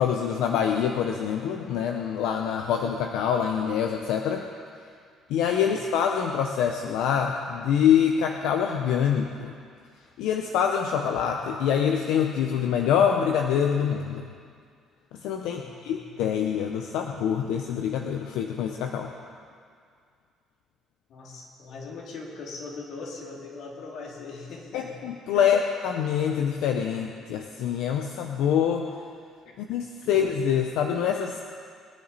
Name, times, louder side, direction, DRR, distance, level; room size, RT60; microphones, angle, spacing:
voice 1, 0.0-4.4 5.3-9.5 10.2-14.3 15.2-19.1 24.7-28.9 29.6-31.4, left 8 dB, 85° left, 3 dB, 0.8 m, -25 dB
voice 2, 15.6-16.1 21.1-24.9 25.3-25.5 29.4-30.2, left 3 dB, 65° left, -1 dB, 2.7 m, -41 dB
22.0 x 10.5 x 4.1 m, 2.2 s
cardioid pair, 115°, 0 cm